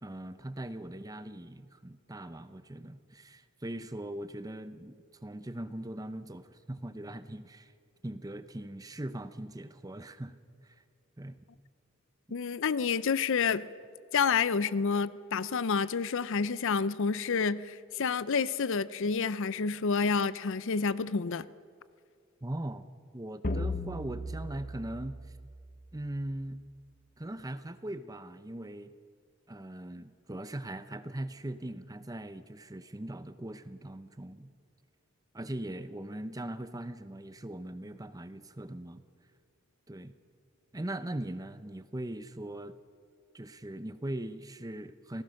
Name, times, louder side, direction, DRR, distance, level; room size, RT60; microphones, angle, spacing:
voice 1, 0.0-7.7 8.0-10.4 10.6-10.8 11.2-11.4 22.4-22.9 23.1-25.2 25.9-26.6 27.2-28.9 29.5-34.5 35.3-39.0 39.9-40.1 40.7-42.8 43.3-45.2, right 1 dB, 15° right, 12 dB, 0.7 m, -40 dB
voice 2, 12.3-13.7 14.1-21.5, left 5 dB, 60° left, 17 dB, 0.5 m, -29 dB
sound 1, 23.4-26.1, left 1 dB, 40° left, 1.0 m, -37 dB
27.0 x 18.5 x 6.4 m, 2.2 s
head